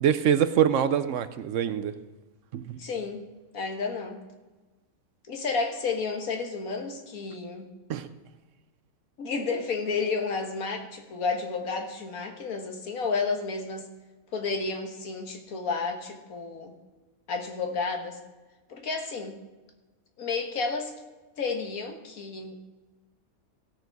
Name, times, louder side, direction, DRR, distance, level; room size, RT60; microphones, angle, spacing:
voice 1, 0.0-1.9 2.5-2.8 7.9-8.1, right 9 dB, 70° right, 12 dB, 0.9 m, -24 dB
voice 2, 2.8-3.2 3.5-4.2 5.3-7.7 9.2-13.9 14.3-16.7 17.3-18.2 18.7-19.4 20.2-20.9 21.4-22.6, left 4 dB, 75° left, 4 dB, 1.8 m, -31 dB
16.5 x 6.8 x 4.6 m, 1.2 s
omnidirectional pair, 1.5 m